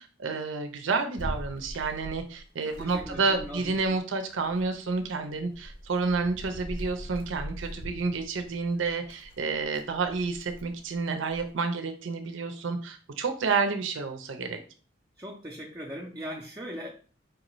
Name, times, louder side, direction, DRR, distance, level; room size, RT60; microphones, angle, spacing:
voice 1, 0.0-14.6, right 4 dB, 85° right, 7 dB, 0.5 m, -30 dB
sound 1, 1.2-4.0 4.3-11.5, equal, 45° left, 0.6 m, -42 dB
voice 2, 2.6-3.7 15.2-16.9, equal, 15° right, -2 dB, 0.5 m, -39 dB
4.7 x 2.5 x 3.0 m, 0.39 s
head